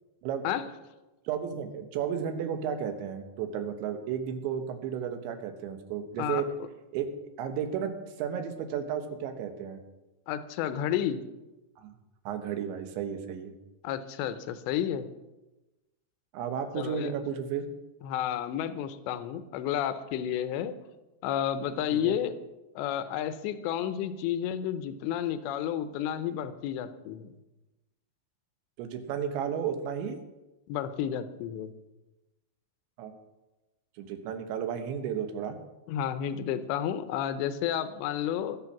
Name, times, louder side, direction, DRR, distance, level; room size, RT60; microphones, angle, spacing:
voice 1, 1.3-6.5 6.9-9.8 11.8-12.0 12.3-13.5 16.3-17.7 21.9-22.2 28.8-30.2 33.0-33.2 34.0-35.6, right 8 dB, 85° right, 7 dB, 3.5 m, -33 dB
voice 2, 10.3-11.2 13.8-15.1 16.8-17.1 18.0-20.7 21.2-22.3 22.8-27.3 30.7-31.7 35.9-38.6, left 10 dB, 85° left, 11 dB, 3.0 m, -31 dB
20.5 x 7.3 x 5.9 m, 1.1 s
omnidirectional pair, 5.1 m